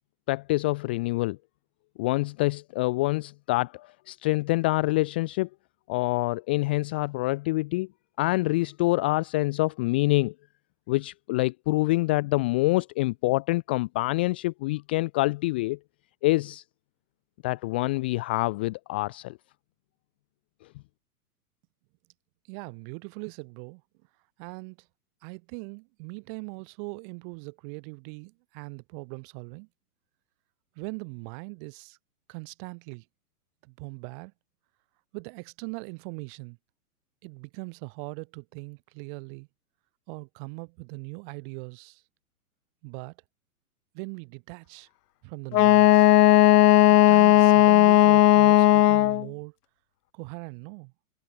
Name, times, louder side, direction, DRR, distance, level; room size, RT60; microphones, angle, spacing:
voice 1, 0.3-1.4 2.0-5.5 5.9-7.9 8.2-10.3 10.9-15.8 16.2-16.6 17.4-19.4, left 21 dB, 10° left, 0.4 m, -26 dB
voice 2, 22.5-23.8 24.4-24.9 25.2-29.7 30.8-32.0 32.3-33.0 33.6-34.3 35.1-36.6 37.2-39.5 40.1-42.0 42.8-43.2 43.9-44.9 45.2-46.2 46.9-49.5 50.1-50.9, right 36 dB, 35° right, 5.9 m, -40 dB
Wind instrument woodwind instrument, 45.5-49.3, left 14 dB, 85° left, 0.6 m, -16 dB
hypercardioid pair, 160°, 45 cm